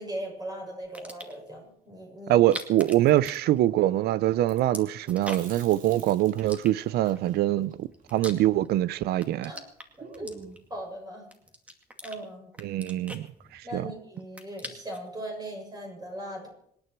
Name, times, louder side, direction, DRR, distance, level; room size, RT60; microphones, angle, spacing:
voice 1, 0.0-2.4 9.4-9.6 10.0-10.3 10.7-11.3 12.0-12.5 13.6-16.5, right 1 dB, 25° right, 7.0 m, -38 dB
sound 1, 0.8-1.5 2.3-4.0 4.3-5.7 6.4-7.2 7.7-8.8 9.1-10.8 11.3-12.2 12.5-13.9 14.2-15.1, equal, 10° right, 2.3 m, -42 dB
voice 2, 2.3-9.5 12.6-13.3 13.5-13.9, right 14 dB, 85° right, 0.5 m, -24 dB
Chewing mastication, 5.1-9.3 9.6-9.7 10.0-10.7, right 4 dB, 55° right, 3.2 m, -49 dB
26.0 x 9.8 x 4.6 m
cardioid pair, 110°, 16 cm